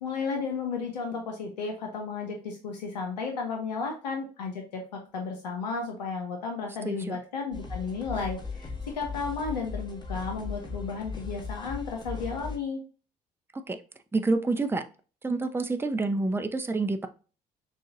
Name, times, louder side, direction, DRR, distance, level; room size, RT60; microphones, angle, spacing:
voice 1, 0.0-12.8, left 4 dB, 85° left, 2 dB, 0.7 m, -33 dB
voice 2, 6.8-7.2 13.7-13.8 14.1-14.8 15.2-17.1, right 3 dB, 10° right, 7 dB, 0.6 m, -28 dB
sound 1, 7.5-12.6, left 4 dB, 20° left, 1.6 m, -38 dB
6.2 x 2.4 x 2.8 m, 0.36 s
figure-of-eight pair, 50°, 21 cm